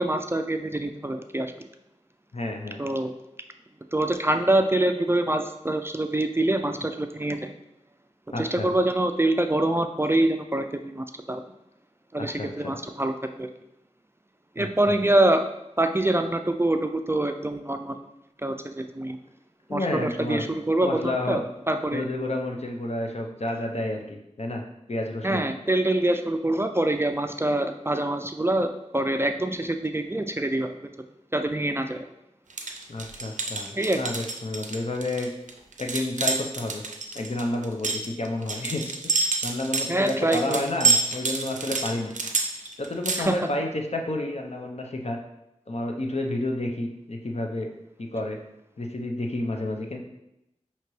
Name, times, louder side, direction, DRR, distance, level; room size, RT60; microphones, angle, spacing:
voice 1, 0.0-1.5 2.8-3.1 3.9-7.5 8.4-11.4 12.1-13.5 14.6-15.4 15.8-18.0 18.4-19.2 19.7-21.4 21.7-22.0 25.2-30.9 31.3-32.1 33.7-34.0 39.9-40.6 43.2-43.4, right 1 dB, 20° right, 6 dB, 0.3 m, -25 dB
voice 2, 2.3-2.8 8.3-8.7 12.2-12.8 14.6-14.9 19.7-20.4 20.8-21.4 21.9-24.6 24.9-25.5 32.9-35.3 35.8-36.8 37.1-38.8 39.1-42.1 42.8-45.2 45.7-47.7 48.0-48.4 48.8-50.0, left 2 dB, 60° left, 2 dB, 0.7 m, -30 dB
sound 1, 32.5-43.2, right 4 dB, 90° right, 0.4 m, -28 dB
5.7 x 2.9 x 3.1 m, 0.85 s
wide cardioid pair, 45°, 12 cm